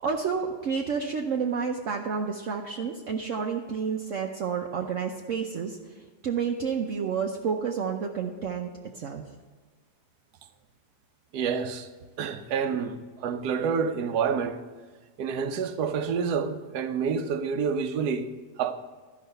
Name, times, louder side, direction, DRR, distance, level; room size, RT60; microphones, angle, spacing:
voice 1, 0.0-5.8 6.2-9.2, right 6 dB, 60° right, 1.0 m, -30 dB
voice 2, 11.3-11.9 12.2-14.6 15.2-18.3 18.6-18.7, right 6 dB, 75° right, 1.3 m, -28 dB
12.5 x 5.5 x 6.6 m
omnidirectional pair, 1.7 m